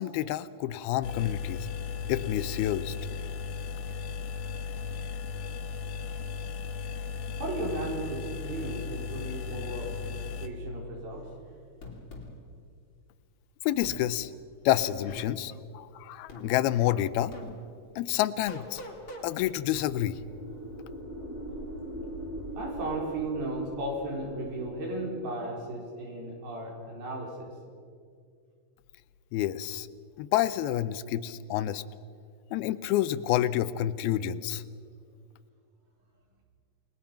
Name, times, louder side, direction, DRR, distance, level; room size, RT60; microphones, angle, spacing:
voice 1, 0.0-1.7 2.1-3.0 13.7-14.3 14.7-17.4 18.0-18.8 19.2-20.2 29.3-29.9 30.2-31.8 32.5-34.6, left 13 dB, 85° left, 15 dB, 2.6 m, -28 dB
sound 1, 1.0-10.5, left 5 dB, 70° left, 2.5 m, -36 dB
voice 2, 7.4-11.3 15.7-15.8 22.6-27.5, right 2 dB, 70° right, -1 dB, 6.3 m, -35 dB
sound 2, 11.8-12.3 13.8-14.0 14.8-15.3 16.3-16.5 17.3-17.5 18.5-19.3, left 2 dB, 35° left, 3.4 m, -42 dB
sound 3, 19.0-25.1, right 1 dB, 5° right, 4.9 m, -41 dB
29.0 x 20.5 x 5.8 m, 2.2 s
omnidirectional pair, 4.3 m